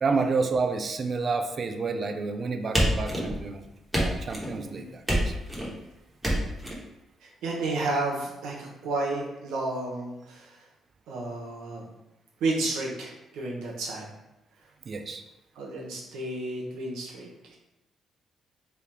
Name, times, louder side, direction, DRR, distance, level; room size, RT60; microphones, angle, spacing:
voice 1, 0.0-3.7 4.0-5.3 14.9-15.2, right 4 dB, 45° right, 6 dB, 0.3 m, -29 dB
sound 1, 2.7-3.5 3.9-4.5 5.1-5.7 6.2-6.7, equal, 10° right, 1.1 m, -26 dB
voice 2, 4.5-4.9 7.2-10.5 11.1-11.8 12.4-14.1 15.6-17.6, right 2 dB, 85° right, -2 dB, 0.9 m, -32 dB
3.4 x 2.2 x 4.3 m, 0.94 s
cardioid pair, 90°, 0 cm